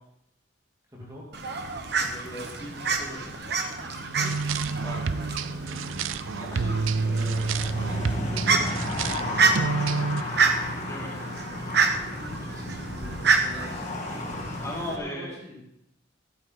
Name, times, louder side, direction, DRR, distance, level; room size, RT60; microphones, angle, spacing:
voice 1, 0.9-1.3 4.2-4.4 4.9-5.1 6.5-10.2 11.1-11.2 12.0-15.6, left 1 dB, 15° right, -4 dB, 2.6 m, -44 dB
Fowl, 1.3-15.0, right 4 dB, 55° right, 1.2 m, -29 dB
sound 1, 1.9-14.8, left 2 dB, 40° left, 1.7 m, -35 dB
voice 2, 2.0-3.3 4.8-5.1 6.4-6.7 9.2-9.3 10.7-11.1 14.6-15.3, left 1 dB, 15° left, -5 dB, 3.1 m, -37 dB
sound 2, 4.1-10.2, right 4 dB, 80° right, 0.5 m, -29 dB
12.5 x 11.0 x 4.0 m, 0.79 s
head